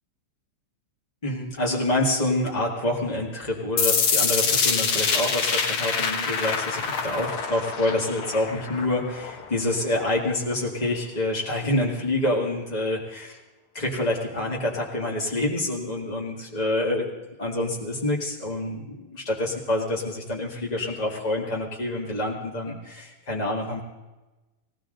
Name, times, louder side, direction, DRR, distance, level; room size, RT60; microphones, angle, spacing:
voice 1, 1.2-13.4 13.7-17.1 17.4-23.8, left 1 dB, 35° left, -1 dB, 0.6 m, -27 dB
sound 1, 3.8-9.8, left 5 dB, 70° left, 1.3 m, -25 dB
19.5 x 17.5 x 3.9 m, 1.1 s
omnidirectional pair, 4.2 m